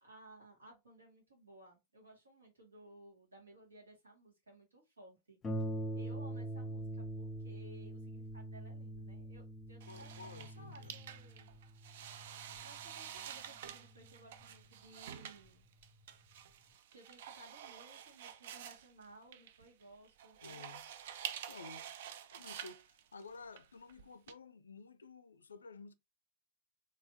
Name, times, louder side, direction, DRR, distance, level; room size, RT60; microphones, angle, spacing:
voice 1, 0.0-5.4 5.9-11.6 12.6-15.7 16.9-20.6, right 1 dB, 75° right, 1.9 m, -59 dB
Harp, 5.4-14.6 15.5-15.6 16.0-16.1, right 1 dB, 20° left, 0.7 m, -44 dB
voice 2, 9.8-10.9 20.4-20.9 21.5-21.9 22.3-25.9, left 4 dB, 75° left, 0.4 m, -53 dB
sound 1, 9.8-24.3, right 9 dB, 55° right, 0.4 m, -49 dB
4.1 x 3.2 x 2.7 m
figure-of-eight pair, 90°, 0 cm